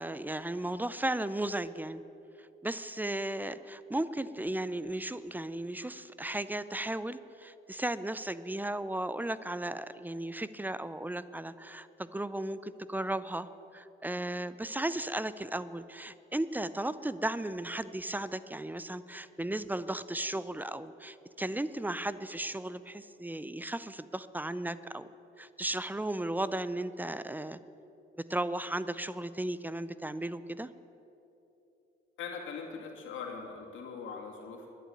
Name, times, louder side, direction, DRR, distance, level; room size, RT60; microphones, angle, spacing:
voice 1, 0.0-2.0 2.4-25.1 25.4-27.6 28.3-30.7, right 1 dB, 10° right, 15 dB, 0.5 m, -35 dB
voice 2, 32.2-34.7, left 5 dB, 75° left, 0 dB, 2.5 m, -41 dB
11.0 x 9.3 x 9.2 m, 2.9 s
cardioid pair, 90°, 20 cm